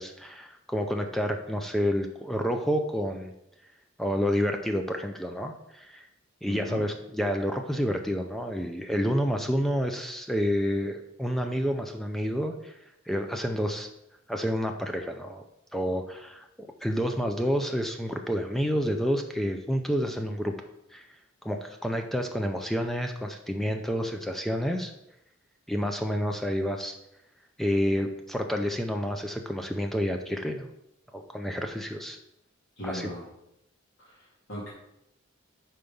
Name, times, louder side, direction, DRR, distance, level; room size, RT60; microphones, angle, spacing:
voice 1, 0.0-3.3 4.0-6.0 6.4-12.7 13.1-13.9 14.3-15.4 15.7-20.5 20.9-21.1 21.4-24.9 25.7-26.9 27.6-30.7 31.1-32.2 32.8-33.1, equal, ahead, 4 dB, 0.4 m, -29 dB
voice 2, 6.4-6.8 32.8-33.2 34.0-34.7, equal, 75° left, -8 dB, 2.2 m, -38 dB
5.1 x 4.5 x 5.3 m, 0.84 s
head